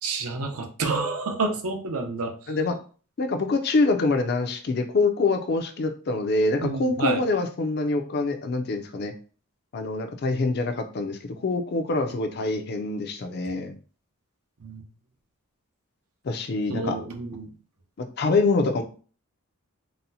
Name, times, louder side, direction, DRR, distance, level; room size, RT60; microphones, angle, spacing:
voice 1, 0.0-2.6 6.6-7.2 14.6-14.8 16.7-17.5, right 3 dB, 80° right, 5 dB, 0.6 m, -29 dB
voice 2, 3.2-9.1 9.7-13.7 16.2-17.0 18.2-18.8, left 3 dB, 45° left, 7 dB, 0.4 m, -25 dB
4.0 x 2.0 x 2.7 m, 0.39 s
head